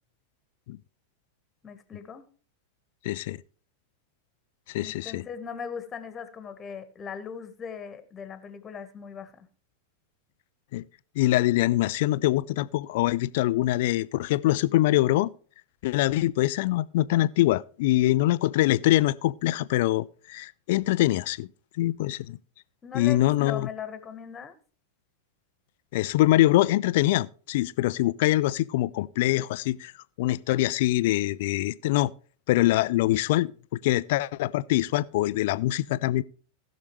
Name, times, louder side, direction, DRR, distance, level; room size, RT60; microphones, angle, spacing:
voice 1, 1.6-2.2 4.8-9.5 22.8-24.5, left 7 dB, 20° left, 1.4 m, -39 dB
voice 2, 3.0-3.4 4.7-5.2 10.7-10.8 11.2-15.3 15.8-21.5 21.8-22.4 22.9-23.7 25.9-29.9 30.2-32.1 32.5-33.5 33.8-36.2, left 16 dB, 50° left, 0.4 m, -24 dB
18.5 x 6.5 x 3.2 m
figure-of-eight pair, 90°, 0 cm